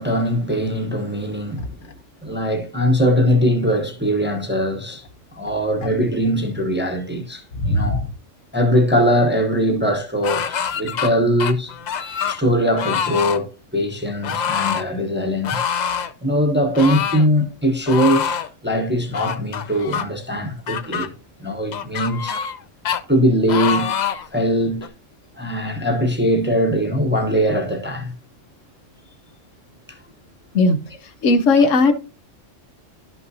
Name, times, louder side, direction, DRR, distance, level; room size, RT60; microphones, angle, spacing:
voice 1, 0.0-1.7 2.2-5.0 5.4-8.1 8.5-11.7 12.3-15.6 16.2-21.1 21.4-22.4 23.1-23.9 24.3-24.9 25.4-28.1 29.9-30.0, equal, 10° right, 0.7 m, -21 dB
voice 2, 7.6-8.0 30.5-30.8 31.2-31.9, left 3 dB, 85° left, 1.2 m, -16 dB
sound 1, 10.2-11.1 11.4-12.4 12.8-13.4 14.2-14.8 15.4-16.1 16.7-17.3 17.9-18.5 19.1-20.0 20.7-21.1 21.7-22.6 22.8-23.0 23.5-24.3 24.8-24.9, left 7 dB, 60° left, 0.4 m, -25 dB
11.5 x 5.7 x 2.7 m
omnidirectional pair, 1.3 m